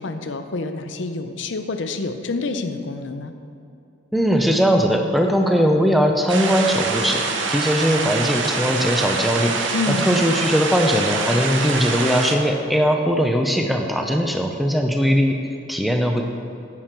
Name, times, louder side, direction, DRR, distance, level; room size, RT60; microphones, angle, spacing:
voice 1, 0.0-3.3 9.7-10.2, left 3 dB, 65° left, 8 dB, 0.6 m, -27 dB
voice 2, 4.1-15.4 15.7-16.2, equal, ahead, 3 dB, 0.5 m, -20 dB
sound 1, 6.3-12.4, right 4 dB, 65° right, 0.8 m, -25 dB
9.7 x 7.5 x 4.4 m, 2.6 s
head